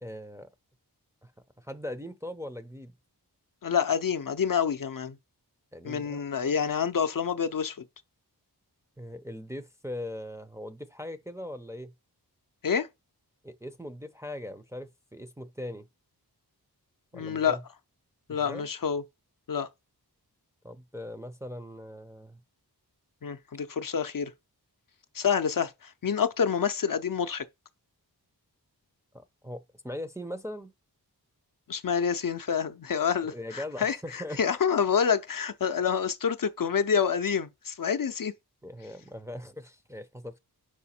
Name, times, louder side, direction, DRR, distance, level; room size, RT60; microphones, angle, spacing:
voice 1, 0.0-0.5 1.2-1.3 1.6-2.9 5.7-6.2 9.0-11.9 13.4-15.9 17.1-17.6 18.3-18.7 20.6-22.4 29.1-30.7 33.2-34.4 38.6-40.4, left 1 dB, 10° right, 0.5 m, -40 dB
voice 2, 3.6-5.2 5.8-7.8 12.6-12.9 17.1-17.6 18.3-19.0 19.5-19.7 23.2-24.3 25.1-27.4 31.7-38.3, left 7 dB, 55° left, 0.5 m, -27 dB
4.9 x 4.6 x 4.2 m
wide cardioid pair, 60°, 40 cm